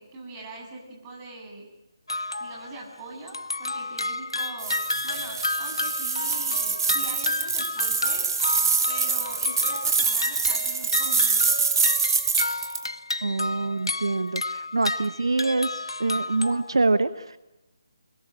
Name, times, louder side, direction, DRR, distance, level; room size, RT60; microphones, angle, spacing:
voice 1, 0.0-1.7 2.4-8.2 8.9-11.4, right 2 dB, 20° right, 0 dB, 7.7 m, -42 dB
sound 1, 2.1-2.9 3.3-16.8, left 2 dB, 80° left, 1.1 m, -31 dB
sound 2, 4.6-12.8, right 5 dB, 50° right, 2.6 m, -25 dB
voice 2, 13.2-17.4, right 3 dB, 75° right, 12 dB, 1.2 m, -25 dB
29.0 x 22.0 x 9.0 m, 0.97 s
figure-of-eight pair, 150°, 3 cm